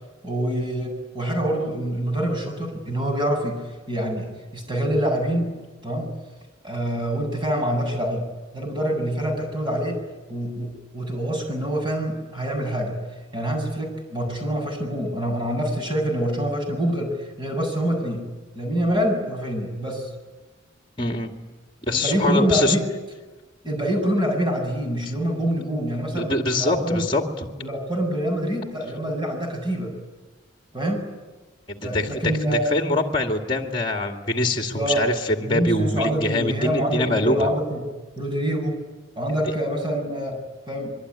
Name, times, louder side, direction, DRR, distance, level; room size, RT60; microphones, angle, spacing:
voice 1, 0.2-6.1 6.6-8.3 8.5-10.0 10.3-13.0 13.3-18.2 18.5-20.1 21.9-22.9 23.6-26.3 26.6-27.0 27.6-29.9 30.7-31.1 31.8-32.7 34.7-35.0 35.4-37.8 38.2-38.8 39.2-40.4 40.7-40.9, right 1 dB, 25° right, 3 dB, 7.7 m, -25 dB
voice 2, 21.0-21.3 21.9-22.8 26.1-27.2 31.7-32.2 32.5-37.4, left 2 dB, 25° left, 4 dB, 2.3 m, -24 dB
26.0 x 23.5 x 9.9 m, 1.2 s
head